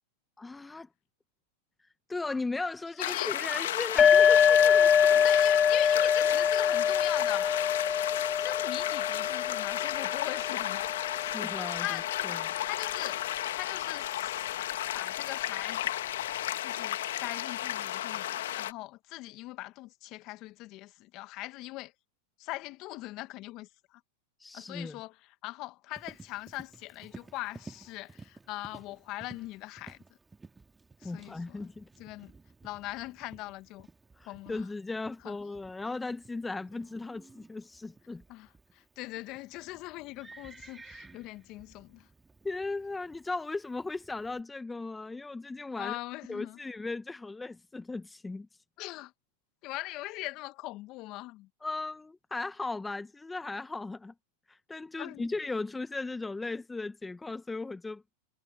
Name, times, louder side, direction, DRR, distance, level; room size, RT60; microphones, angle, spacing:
voice 1, 0.4-0.9 2.1-5.1 11.3-12.5 24.4-25.0 31.0-31.9 34.2-38.2 42.4-46.0 46.3-48.5 51.6-54.1 54.5-58.0, left 3 dB, 10° left, 1.2 m, -37 dB
sound 1, 3.0-18.7, left 13 dB, 75° left, 1.5 m, -33 dB
voice 2, 3.0-3.3 5.2-12.1 12.6-13.2 13.5-14.6 14.9-16.0 16.6-21.9 22.4-24.0 24.5-30.0 31.0-31.7 32.0-32.3 32.6-33.9 34.2-34.7 35.2-35.3 38.3-42.1 45.8-46.6 48.8-49.1 49.6-51.5 55.0-55.3, left 19 dB, 45° left, 1.3 m, -41 dB
sound 2, 4.0-11.5, left 7 dB, 25° left, 0.4 m, -24 dB
Livestock farm animals working animals, 25.9-44.4, right 3 dB, 10° right, 2.0 m, -54 dB
hypercardioid pair, 110°, 0 cm